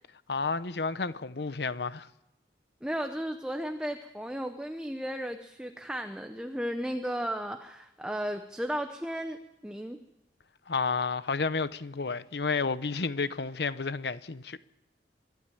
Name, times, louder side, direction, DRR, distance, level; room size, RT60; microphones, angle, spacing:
voice 1, 0.3-2.1 10.7-14.6, left 4 dB, 70° left, 0.8 m, -31 dB
voice 2, 2.8-9.4 9.6-10.0, equal, 5° right, 0.9 m, -34 dB
25.0 x 12.0 x 9.2 m
head